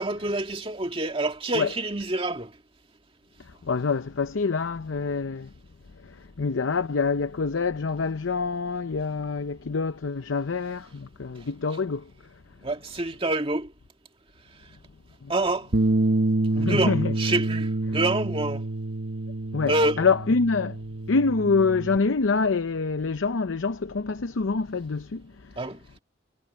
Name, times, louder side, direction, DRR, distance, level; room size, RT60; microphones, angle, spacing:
voice 1, 0.0-2.5 12.6-13.7 15.3-15.7 16.6-18.6 19.7-20.1 25.6-25.8, right 2 dB, 30° right, 2.0 m, -27 dB
voice 2, 3.6-5.5 6.0-12.1 15.2-15.3 16.6-17.1 19.5-20.8 21.1-25.5, left 4 dB, 85° left, 0.7 m, -26 dB
Bass guitar, 15.7-22.0, right 2 dB, 55° right, 1.0 m, -27 dB
head